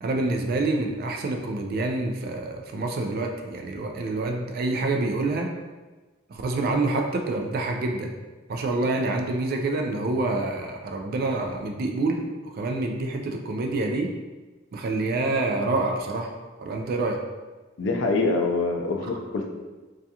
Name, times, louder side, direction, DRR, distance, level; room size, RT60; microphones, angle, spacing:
voice 1, 0.0-5.5 6.3-8.1 8.5-14.1 14.7-16.3 16.6-17.2, right 2 dB, 50° right, 3 dB, 0.3 m, -27 dB
voice 2, 17.8-19.5, left 3 dB, 70° left, 2 dB, 0.4 m, -25 dB
2.3 x 2.3 x 2.7 m, 1.2 s
head